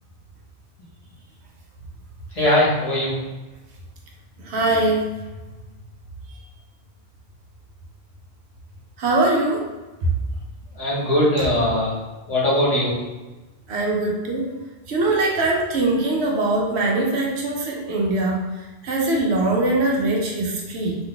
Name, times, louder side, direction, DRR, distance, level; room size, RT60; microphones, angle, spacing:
voice 1, 2.4-3.1 10.8-11.9 12.3-12.9, left 1 dB, 35° left, -7 dB, 1.0 m, -20 dB
voice 2, 4.4-5.0 9.0-9.7 11.4-11.5 13.7-14.5 14.9-18.4 18.8-21.0, right 2 dB, 80° right, -1 dB, 0.9 m, -22 dB
2.5 x 2.4 x 3.7 m, 1.2 s
omnidirectional pair, 1.1 m